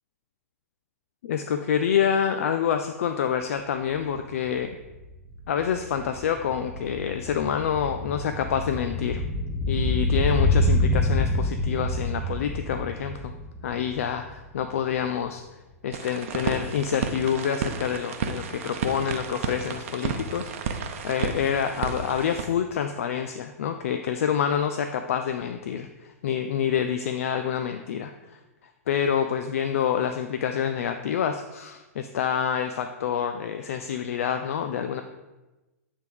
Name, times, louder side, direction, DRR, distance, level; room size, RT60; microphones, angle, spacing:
voice 1, 1.2-4.7 5.5-9.2 9.7-13.3 13.6-15.4 15.8-28.4 28.9-35.0, left 8 dB, 60° left, 7 dB, 0.4 m, -27 dB
sound 1, 4.0-4.1 4.3-14.7 15.0-15.1, left 1 dB, 10° left, 1.1 m, -27 dB
sound 2, 15.9-22.5, right 6 dB, 55° right, 0.7 m, -32 dB
8.9 x 3.5 x 4.9 m, 1.1 s
figure-of-eight pair, 110°, 8 cm